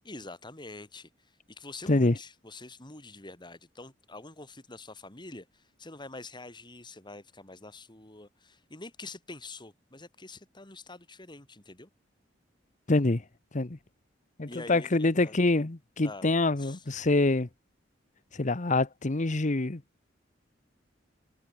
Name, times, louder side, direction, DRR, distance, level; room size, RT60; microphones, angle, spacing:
voice 1, 0.0-11.9 14.5-15.4 16.0-16.3 16.6-16.8, left 2 dB, 25° left, 3.2 m, -46 dB
voice 2, 12.9-13.2 13.5-13.8 14.4-17.5 18.3-19.8, left 2 dB, 40° left, 1.0 m, -25 dB
head